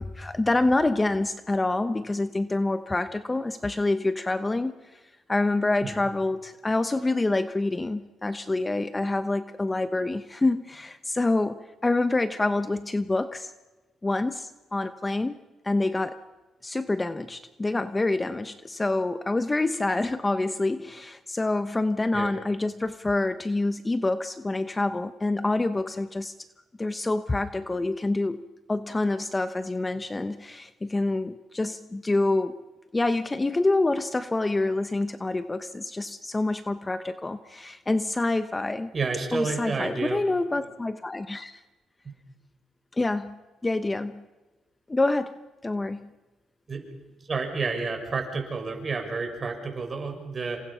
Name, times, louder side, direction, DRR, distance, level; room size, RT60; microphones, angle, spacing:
voice 1, 0.0-5.0 5.3-13.5 14.0-15.3 15.6-16.2 16.6-26.3 26.8-28.4 28.7-32.6 32.9-38.9 39.3-41.6 42.9-44.2 44.9-45.3 45.6-46.1, left 2 dB, 20° left, 11 dB, 1.0 m, -27 dB
voice 2, 38.9-40.2 40.5-40.7 46.7-46.8 47.2-50.6, right 4 dB, 35° right, 3 dB, 6.3 m, -30 dB
28.0 x 25.5 x 5.7 m, 1.2 s
cardioid pair, 90°, 0 cm